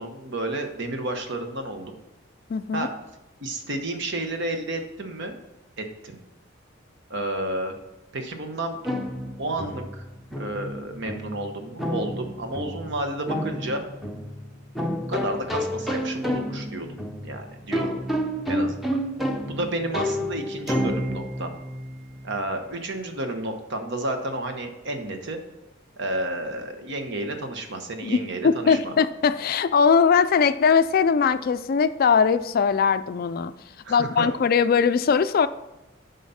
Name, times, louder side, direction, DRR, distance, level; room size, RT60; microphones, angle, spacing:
voice 1, 0.0-2.0 2.7-2.9 3.4-5.4 5.8-6.2 7.1-7.7 8.1-8.8 9.4-10.1 10.4-13.8 15.1-17.9 18.5-19.0 19.5-21.5 22.2-25.4 26.0-29.0 33.8-34.3, right 1 dB, 60° right, 6 dB, 1.1 m, -31 dB
voice 2, 2.5-2.9 28.0-28.2 28.4-33.5 33.9-35.5, left 6 dB, 45° left, 13 dB, 0.3 m, -20 dB
sound 1, 8.9-22.4, equal, ahead, 0.7 m, -30 dB
9.1 x 5.6 x 4.2 m, 1.0 s
head